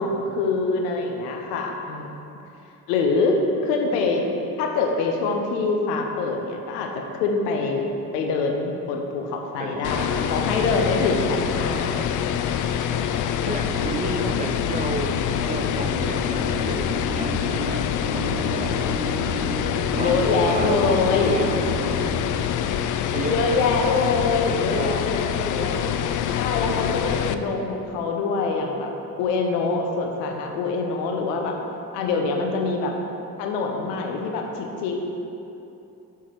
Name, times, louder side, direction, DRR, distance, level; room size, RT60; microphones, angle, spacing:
voice 1, 0.0-2.1 2.9-4.2 4.6-7.8 8.1-12.1 20.0-21.4 23.3-25.8 26.4-28.9 29.2-31.6 31.9-32.9 33.4-35.0, left 3 dB, 80° left, 2 dB, 0.8 m, -24 dB
voice 2, 9.6-10.5 12.9-13.0 13.5-19.1 19.9-20.2 20.4-22.2 23.1-24.0 24.7-25.3, right 3 dB, 15° right, 5 dB, 0.5 m, -34 dB
sound 1, 9.8-27.3, left 9 dB, 45° left, 0.4 m, -25 dB
sound 2, 13.6-22.1, equal, 60° right, 1.6 m, -32 dB
7.0 x 4.7 x 4.6 m, 2.9 s
hypercardioid pair, 45°, 47 cm